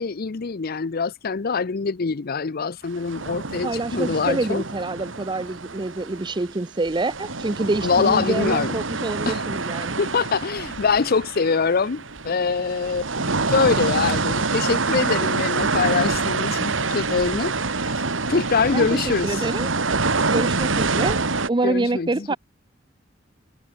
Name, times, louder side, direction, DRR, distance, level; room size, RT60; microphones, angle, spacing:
voice 1, 0.0-4.6 7.8-8.8 9.3-9.4 10.0-17.5 18.3-19.4 21.6-22.4, left 5 dB, 50° left, 0.6 m, -24 dB
sound 1, 3.0-6.5 6.8-21.5, right 3 dB, 85° right, 2.4 m, -26 dB
voice 2, 3.6-10.0 18.7-20.0 20.3-21.2 21.5-22.4, right 2 dB, 25° right, 0.6 m, -26 dB
head